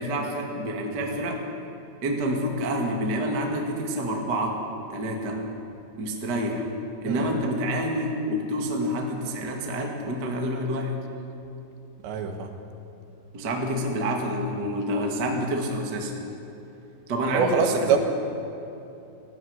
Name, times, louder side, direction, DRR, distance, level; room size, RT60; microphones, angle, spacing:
voice 1, 0.0-1.4 2.0-4.6 4.9-5.4 6.0-6.7 7.0-10.9 13.3-16.1 17.1-18.0, equal, 40° right, 1 dB, 1.6 m, -28 dB
voice 2, 12.0-12.5 17.3-18.0, right 6 dB, 70° right, 5 dB, 3.4 m, -24 dB
18.5 x 14.5 x 9.7 m, 2.9 s
omnidirectional pair, 5.6 m